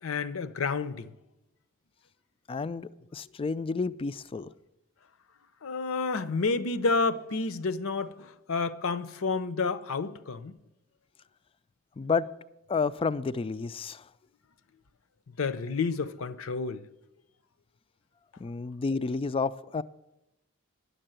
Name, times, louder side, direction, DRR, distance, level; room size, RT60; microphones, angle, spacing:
voice 1, 0.0-1.1 5.6-10.6 15.3-16.8, left 4 dB, 75° left, 0.6 m, -30 dB
voice 2, 2.5-4.5 12.0-12.3 12.7-14.0 18.4-19.8, left 4 dB, 25° left, 0.3 m, -30 dB
10.0 x 6.7 x 8.9 m
head